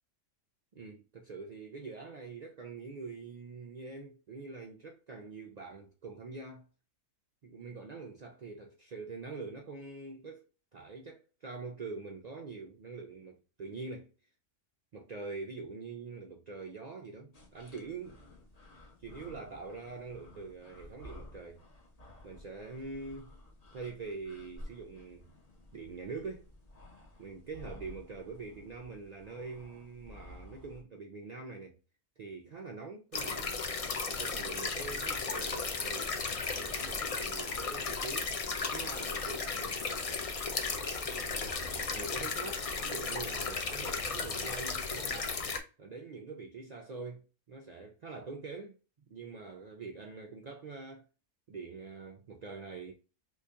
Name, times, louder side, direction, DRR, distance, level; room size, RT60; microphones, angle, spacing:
voice 1, 0.7-6.7 7.4-10.5 10.7-14.1 14.9-18.2 19.0-21.6 22.2-23.3 23.7-25.3 25.7-26.5 27.2-31.8 32.2-33.5 34.1-36.2 36.5-38.3 38.7-40.3 41.0-45.4 45.8-48.8 49.1-51.1 51.5-52.9, right 4 dB, 80° right, 0.3 m, -44 dB
sound 1, 17.3-30.8, left 1 dB, 35° left, 0.8 m, -53 dB
sound 2, 33.1-45.6, left 4 dB, 60° left, 0.3 m, -35 dB
3.1 x 2.7 x 3.5 m
omnidirectional pair, 1.3 m